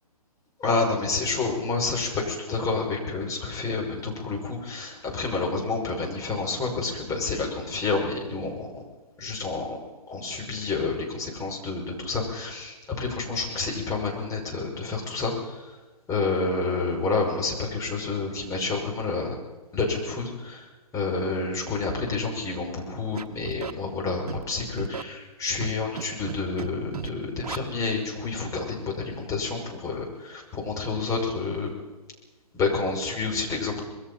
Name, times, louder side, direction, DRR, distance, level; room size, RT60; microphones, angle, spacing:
voice 1, 0.6-8.8 9.2-9.8 10.1-15.7 16.1-19.3 19.7-31.7 32.5-33.8, left 3 dB, 15° left, -1 dB, 5.9 m, -29 dB
Scratching (performance technique), 23.1-23.7 24.3-24.4 24.8-25.0 25.6-26.0 26.3-26.7 26.9-27.1 27.4-27.6, right 7 dB, 65° right, 1.4 m, -34 dB
25.5 x 21.5 x 5.7 m, 1.2 s
figure-of-eight pair, 135°, 20 cm